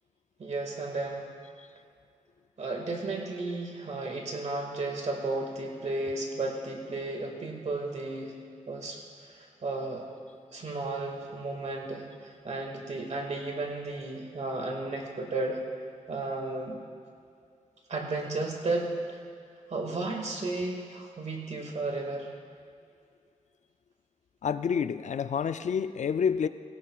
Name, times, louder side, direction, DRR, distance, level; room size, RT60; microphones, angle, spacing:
voice 1, 0.4-1.3 2.6-8.4 8.7-10.1 10.5-15.6 16.1-16.8 17.9-19.2 19.7-22.3, right 2 dB, 60° right, 1 dB, 2.0 m, -33 dB
voice 2, 24.4-26.5, left 7 dB, 65° left, 12 dB, 0.4 m, -28 dB
17.0 x 17.0 x 2.4 m, 2.3 s
wide cardioid pair, 130°, 14 cm